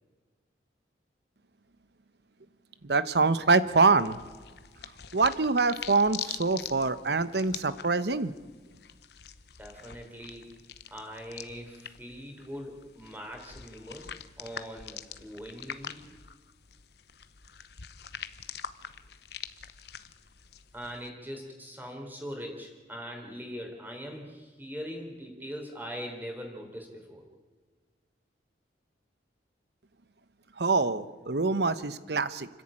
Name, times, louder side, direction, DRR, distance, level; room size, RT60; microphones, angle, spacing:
voice 1, 2.8-4.2 5.1-8.3 30.6-32.5, right 4 dB, 60° right, 14 dB, 0.9 m, -25 dB
sound 1, 4.0-21.1, left 9 dB, 60° left, 0.9 m, -44 dB
voice 2, 9.6-10.5 10.9-14.1 14.4-16.1 20.7-27.2, equal, 10° right, 2 dB, 3.8 m, -41 dB
29.0 x 11.0 x 8.8 m, 1.4 s
head